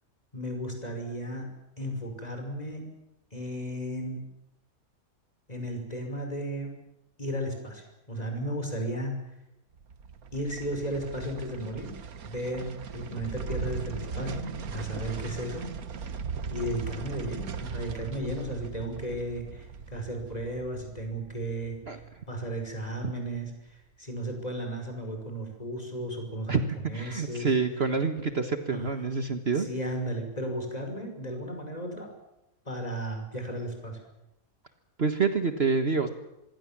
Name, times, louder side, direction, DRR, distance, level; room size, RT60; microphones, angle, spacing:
voice 1, 0.3-1.5 1.8-2.9 3.3-4.2 5.5-6.8 7.2-9.2 10.3-11.9 12.3-15.7 16.5-27.5 28.7-28.9 29.5-32.1 32.7-34.0, right 1 dB, 25° left, 4 dB, 5.9 m, -34 dB
sound 1, 9.7-22.9 23.2-23.3, right 6 dB, 90° right, 1.7 m, -39 dB
voice 2, 26.9-29.7 35.0-36.1, right 4 dB, 45° right, 8 dB, 1.7 m, -27 dB
26.5 x 21.5 x 7.5 m, 0.89 s
omnidirectional pair, 1.5 m